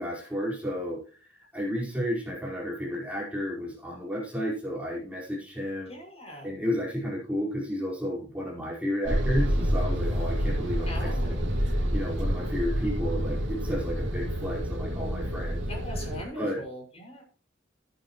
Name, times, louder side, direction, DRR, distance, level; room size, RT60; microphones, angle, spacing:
voice 1, 0.0-5.9 6.4-15.7 15.9-16.0 16.3-16.6, equal, 5° right, -4 dB, 4.8 m, -32 dB
voice 2, 5.9-6.5 10.9-11.4 15.7-17.2, equal, 35° left, 0 dB, 6.0 m, -40 dB
sound 1, 9.1-16.2, equal, 70° right, 3.0 m, -28 dB
17.5 x 9.5 x 3.1 m, 0.39 s
head